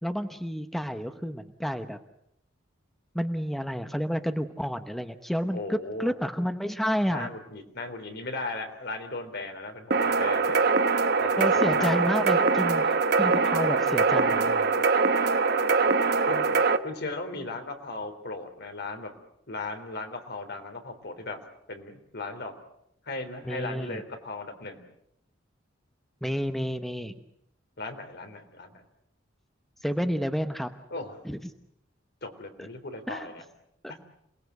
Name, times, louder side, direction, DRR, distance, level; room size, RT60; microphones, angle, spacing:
voice 1, 0.0-2.0 3.1-7.3 11.4-14.6 23.4-24.0 26.2-27.1 29.8-30.7 31.2-31.4 32.6-32.7 33.1-33.3, equal, ahead, 8 dB, 0.9 m, -30 dB
voice 2, 5.5-6.1 7.1-10.6 11.2-12.1 16.3-16.6 16.8-19.1 19.5-21.4 21.7-22.5 23.0-24.8 27.8-28.8 30.9-31.2 32.2-33.4 33.9-34.0, left 2 dB, 60° left, 6 dB, 3.5 m, -37 dB
sound 1, 9.9-16.8, right 4 dB, 55° right, 1.2 m, -23 dB
27.5 x 19.5 x 8.1 m, 0.76 s
head